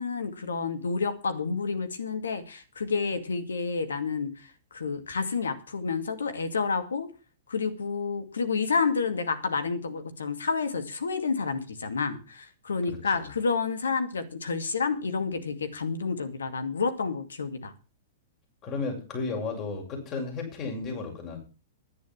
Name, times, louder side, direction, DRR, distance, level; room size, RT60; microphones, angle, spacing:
voice 1, 0.0-4.5 4.7-7.1 7.5-17.7, left 5 dB, 85° left, 2.3 m, -29 dB
voice 2, 12.9-13.3 18.6-21.4, left 4 dB, 35° left, 7.0 m, -34 dB
11.0 x 9.8 x 7.4 m
hypercardioid pair, 110°, 0 cm